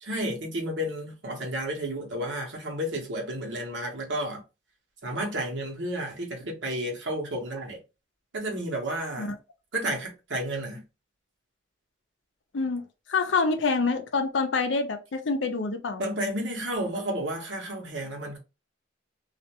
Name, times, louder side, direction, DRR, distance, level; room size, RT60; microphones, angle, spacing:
voice 1, 0.0-4.4 5.0-7.8 8.3-9.4 9.7-10.8 16.0-18.4, right 1 dB, 75° right, 0.9 m, -31 dB
voice 2, 12.5-16.0, left 4 dB, 80° left, 0.5 m, -27 dB
2.4 x 2.1 x 2.8 m
head